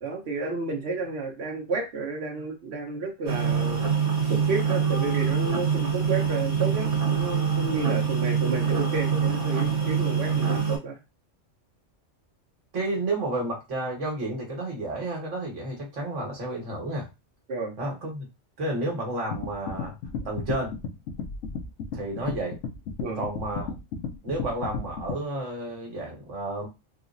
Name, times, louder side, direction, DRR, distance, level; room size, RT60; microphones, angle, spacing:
voice 1, 0.0-3.8 4.3-11.0 17.5-17.7 23.0-23.2, right 3 dB, 60° right, 1 dB, 1.2 m, -31 dB
sound 1, 3.3-10.8, right 6 dB, 35° right, 0.9 m, -25 dB
voice 2, 12.7-17.1 17.8-18.3 18.6-19.9 20.2-20.8 21.9-22.6 23.2-23.7 24.2-26.7, right 2 dB, 75° right, 0 dB, 1.5 m, -31 dB
sound 2, 19.3-25.2, left 5 dB, 80° left, 1.0 m, -34 dB
3.6 x 2.0 x 2.6 m, 0.24 s
omnidirectional pair, 1.3 m